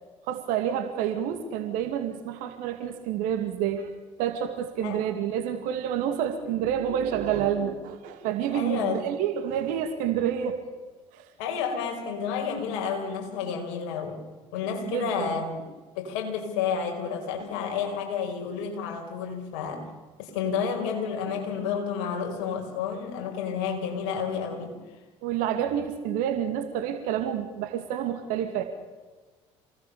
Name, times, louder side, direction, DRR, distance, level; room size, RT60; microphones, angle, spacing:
voice 1, 0.3-3.9 4.2-10.6 11.1-11.3 14.8-15.3 25.2-28.6, right 9 dB, 70° right, 7 dB, 2.6 m, -28 dB
voice 2, 8.5-9.0 11.4-14.2 14.5-15.7 16.0-19.9 20.2-24.8, left 6 dB, 75° left, 4 dB, 5.6 m, -30 dB
28.0 x 19.5 x 7.1 m, 1.3 s
hypercardioid pair, 60°, 15 cm